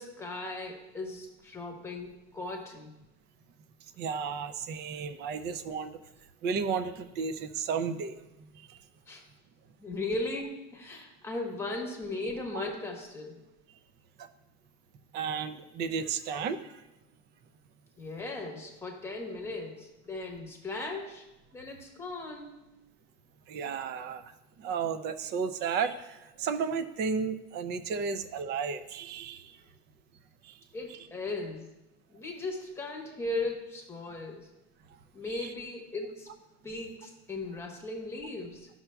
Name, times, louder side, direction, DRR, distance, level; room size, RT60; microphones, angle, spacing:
voice 1, 0.0-2.9 9.1-9.2 9.8-13.4 18.0-21.2 21.5-22.6 30.7-31.7 32.1-34.5 35.1-36.3 36.6-38.7, left 2 dB, 10° left, 1 dB, 1.1 m, -37 dB
voice 2, 4.0-6.0 6.4-8.2 8.6-8.8 12.5-12.6 14.2-14.3 15.1-16.7 23.5-24.2 24.6-29.5 30.4-30.5 30.9-31.0 35.3-35.5, right 6 dB, 35° right, 11 dB, 0.4 m, -33 dB
13.0 x 5.8 x 2.3 m, 0.98 s
cardioid pair, 165°, 32 cm